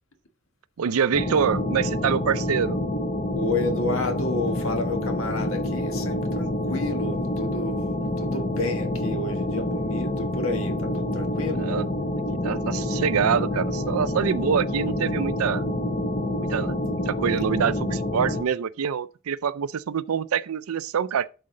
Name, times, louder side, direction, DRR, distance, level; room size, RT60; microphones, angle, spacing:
voice 1, 0.8-2.8 11.6-11.9 12.4-15.6 16.4-21.3, right 7 dB, 90° right, 0.4 m, -25 dB
sound 1, 1.1-18.4, left 1 dB, 30° left, 0.7 m, -27 dB
voice 2, 3.3-7.8 8.2-11.6, left 2 dB, 75° left, 1.4 m, -30 dB
11.5 x 4.3 x 3.8 m
head